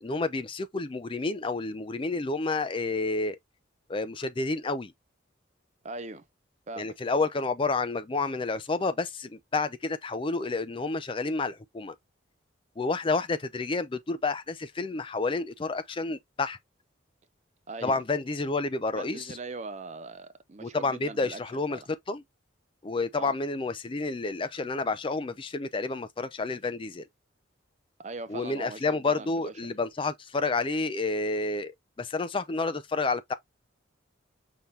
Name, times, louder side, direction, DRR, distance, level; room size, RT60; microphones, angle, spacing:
voice 1, 0.0-3.4 3.9-4.9 6.8-11.9 12.8-16.6 17.8-19.4 20.6-21.8 22.1-22.2 22.8-27.0 28.3-33.3, left 3 dB, 25° left, 0.4 m, -30 dB
voice 2, 5.8-6.2 6.7-7.0 17.7-18.0 18.9-21.4 21.7-21.9 23.2-23.3 28.0-29.7, right 3 dB, 35° right, 0.5 m, -40 dB
5.6 x 3.3 x 2.7 m
head